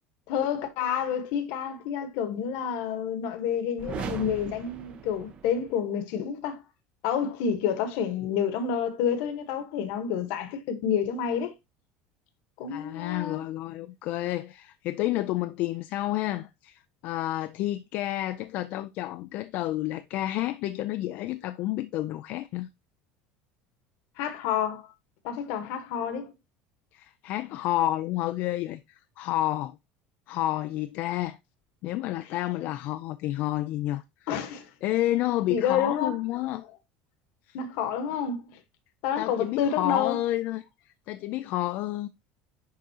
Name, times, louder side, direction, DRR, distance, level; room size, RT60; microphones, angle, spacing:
voice 1, 0.3-6.6 7.0-11.5 12.6-13.4 24.2-24.9 25.2-26.3 34.3-34.7 35.5-36.6 37.5-38.6 39.0-40.2, left 8 dB, 60° left, 1.1 m, -29 dB
sound 1, 3.8-5.8, right 6 dB, 30° right, 0.7 m, -38 dB
voice 2, 12.7-22.7 26.9-29.8 30.3-31.4 31.8-34.0 34.8-36.6 39.2-40.6 41.1-42.1, left 15 dB, 45° left, 0.3 m, -30 dB
10.0 x 3.7 x 2.8 m
cardioid pair, 175°, 4 cm